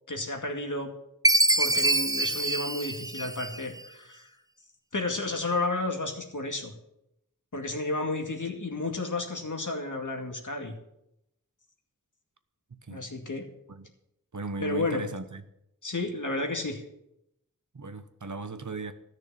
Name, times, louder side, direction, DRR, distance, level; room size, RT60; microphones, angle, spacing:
voice 1, 0.1-0.9 1.6-4.3 4.9-6.7 7.5-10.7 12.9-13.5 14.6-15.0 15.8-16.8, left 2 dB, 65° left, 3 dB, 2.3 m, -32 dB
Chime, 1.2-3.8, right 1 dB, 10° right, 0.5 m, -25 dB
voice 2, 14.3-15.4 17.7-18.9, right 3 dB, 60° right, 9 dB, 1.1 m, -37 dB
14.0 x 6.4 x 8.8 m, 0.82 s
wide cardioid pair, 55°, 34 cm